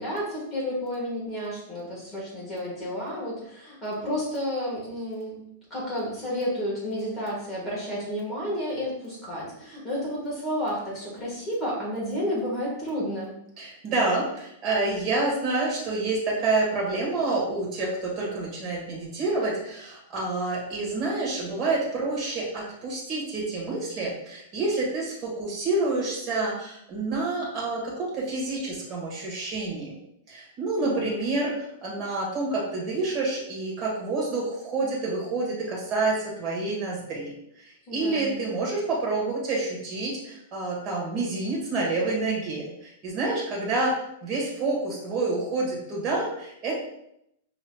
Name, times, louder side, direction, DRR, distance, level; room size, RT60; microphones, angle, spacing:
voice 1, 0.0-5.4 5.7-13.3 30.8-31.2 37.8-38.4, equal, 10° left, -6 dB, 1.5 m, -31 dB
voice 2, 13.6-30.0 30.3-43.9 44.2-46.8, right 3 dB, 25° right, -4 dB, 1.3 m, -28 dB
5.5 x 2.9 x 2.2 m, 0.77 s
supercardioid pair, 170°, 0 cm